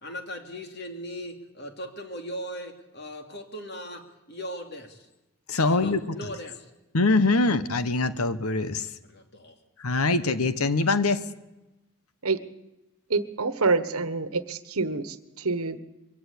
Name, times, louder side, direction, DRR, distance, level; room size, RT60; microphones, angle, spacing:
voice 1, 0.0-4.0 4.3-5.1 5.6-6.7 9.0-9.6, equal, 50° left, 5 dB, 2.8 m, -38 dB
voice 2, 5.5-6.1 6.9-8.9 9.8-11.2, left 3 dB, 85° left, 13 dB, 1.1 m, -23 dB
voice 3, 13.1-15.8, right 4 dB, 85° right, 13 dB, 1.3 m, -27 dB
23.0 x 16.0 x 8.5 m, 0.99 s
head